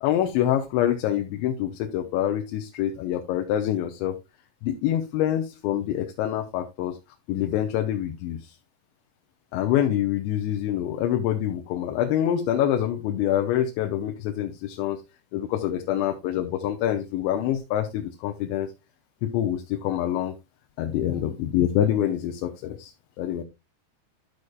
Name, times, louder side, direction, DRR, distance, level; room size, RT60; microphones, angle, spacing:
voice 1, 0.0-4.2 4.6-7.0 7.3-8.6 9.5-15.0 15.3-18.7 19.2-20.4 20.8-23.4, left 11 dB, 90° left, 4 dB, 3.0 m, -26 dB
12.5 x 6.4 x 2.3 m, 0.23 s
omnidirectional pair, 5.1 m